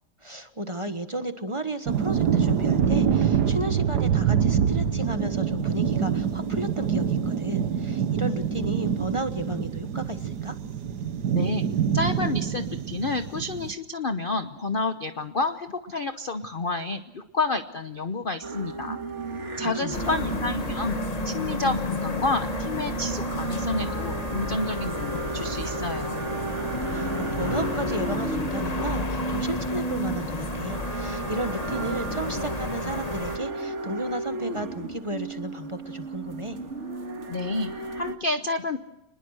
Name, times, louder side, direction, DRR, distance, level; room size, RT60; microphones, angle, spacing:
voice 1, 0.2-10.5 19.6-20.3 26.9-36.6, right 1 dB, 20° right, 9 dB, 1.0 m, -33 dB
sound 1, 1.9-13.7, right 7 dB, 60° right, 1.5 m, -25 dB
voice 2, 11.3-11.7 11.9-19.0 19.6-26.2 37.3-38.8, left 3 dB, 45° left, 9 dB, 0.7 m, -29 dB
sound 2, 18.4-38.1, right 3 dB, 35° right, 2.0 m, -34 dB
sound 3, 19.9-33.4, left 2 dB, 20° left, 1.3 m, -32 dB
25.5 x 21.0 x 6.5 m, 0.94 s
omnidirectional pair, 2.1 m